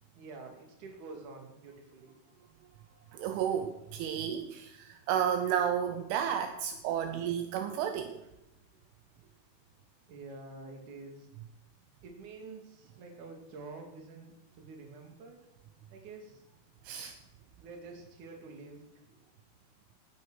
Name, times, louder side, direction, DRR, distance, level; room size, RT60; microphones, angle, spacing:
voice 1, 0.2-2.1 10.1-11.3 12.0-15.4 15.9-16.5 17.6-18.9, right 3 dB, 45° right, 2 dB, 3.7 m, -48 dB
voice 2, 3.1-8.2 16.8-17.2, right 9 dB, 80° right, 8 dB, 3.3 m, -32 dB
18.0 x 10.5 x 6.5 m, 0.93 s
omnidirectional pair, 5.8 m